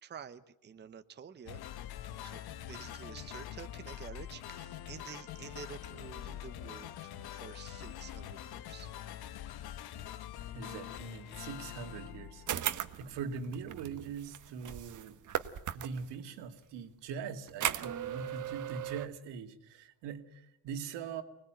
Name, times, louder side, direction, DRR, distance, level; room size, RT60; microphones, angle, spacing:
voice 1, 0.0-1.6 2.2-8.9, right 7 dB, 25° right, 9 dB, 0.9 m, -49 dB
sound 1, 1.5-13.1, left 11 dB, 65° left, 1.2 m, -45 dB
voice 2, 10.4-15.2 15.7-21.2, right 6 dB, 80° right, 6 dB, 2.5 m, -42 dB
sound 2, 12.5-16.1 17.5-19.1, right 10 dB, 45° right, 1.3 m, -37 dB
25.0 x 20.0 x 9.1 m, 0.84 s
cardioid pair, 130°, 41 cm